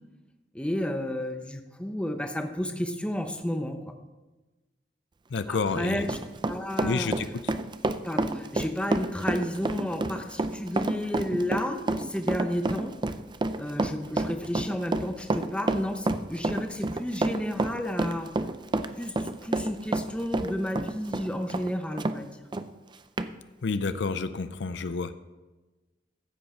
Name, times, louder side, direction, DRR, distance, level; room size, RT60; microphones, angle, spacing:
voice 1, 0.5-3.9 5.5-6.2 6.5-7.1 8.0-12.9 13.6-18.3 19.0-22.3, equal, 5° left, 6 dB, 0.9 m, -32 dB
voice 2, 5.3-6.1 6.8-7.3 23.6-25.2, left 4 dB, 70° left, 12 dB, 0.5 m, -29 dB
Run, 5.5-22.2 22.5-22.7 23.2-23.3, right 2 dB, 25° right, 0.5 m, -29 dB
15.0 x 7.9 x 4.4 m, 1.2 s
head